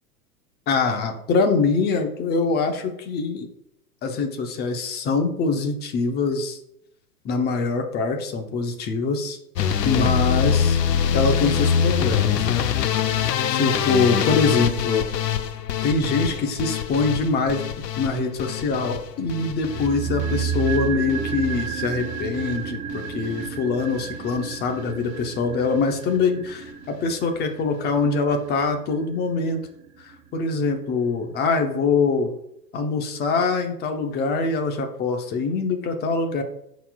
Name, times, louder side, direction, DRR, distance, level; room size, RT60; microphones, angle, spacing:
voice 1, 0.7-3.5 4.0-6.6 7.2-9.4 9.8-10.8 11.1-13.0 13.5-15.0 15.8-29.6 30.0-32.3 32.7-36.4, left 4 dB, 20° left, 5 dB, 0.8 m, -24 dB
sound 1, 9.6-21.7 22.0-22.6 22.9-23.5 23.8-24.0 24.4-24.5 24.7-24.8, left 8 dB, 80° left, 0.8 m, -24 dB
sound 2, 19.6-29.9 30.1-30.2, right 7 dB, 15° right, 0.5 m, -31 dB
11.0 x 4.1 x 2.4 m, 0.76 s
hypercardioid pair, 120°, 49 cm